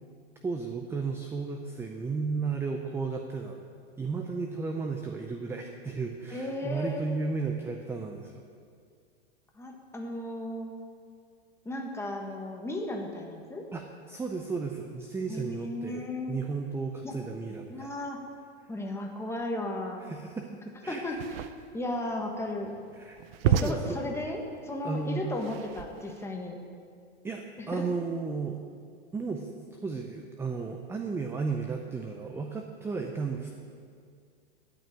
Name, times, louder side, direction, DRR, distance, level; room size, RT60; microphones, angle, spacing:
voice 1, 0.4-3.6 4.0-8.4 13.7-17.9 20.0-20.5 20.8-21.1 22.9-23.2 23.6-23.8 24.8-25.3 27.2-28.6 29.1-33.5, right 4 dB, 5° right, 4 dB, 0.5 m, -34 dB
voice 2, 6.3-7.0 9.5-10.7 11.6-13.7 15.3-16.4 17.0-17.2 17.7-18.2 18.7-20.1 20.9-21.2 21.7-22.7 23.4-26.6 27.6-27.9, left 2 dB, 10° left, 1 dB, 1.4 m, -35 dB
sound 1, 21.1-26.2, right 9 dB, 60° right, 0.6 m, -32 dB
12.5 x 5.5 x 8.8 m, 2.2 s
hypercardioid pair, 130°, 34 cm